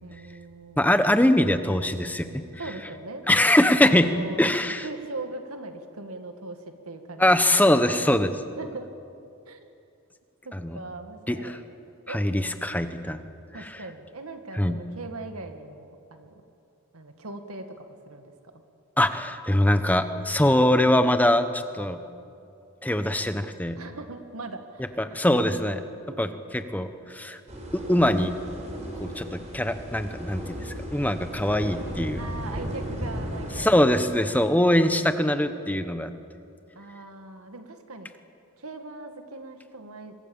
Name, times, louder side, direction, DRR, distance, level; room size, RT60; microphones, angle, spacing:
voice 1, 0.0-0.9 2.6-3.3 3.8-4.4 4.8-7.2 8.6-8.9 9.5-9.7 10.4-11.6 12.1-12.2 13.5-16.3 16.9-18.3 23.8-25.0 26.1-26.2 32.2-33.8 36.8-38.1 38.6-40.1, right 2 dB, 85° right, 6 dB, 2.0 m, -40 dB
voice 2, 0.8-2.3 3.3-4.1 4.4-4.8 7.2-8.3 10.5-10.8 11.3-11.5 12.1-13.3 13.6-13.7 14.6-14.7 19.0-22.0 22.8-23.8 25.0-25.8 26.2-27.4 27.7-28.3 29.0-32.2 33.6-36.1, left 1 dB, 5° left, 9 dB, 1.0 m, -22 dB
sound 1, 27.5-33.7, equal, 30° right, 4.0 m, -35 dB
25.5 x 23.0 x 7.2 m, 2.6 s
head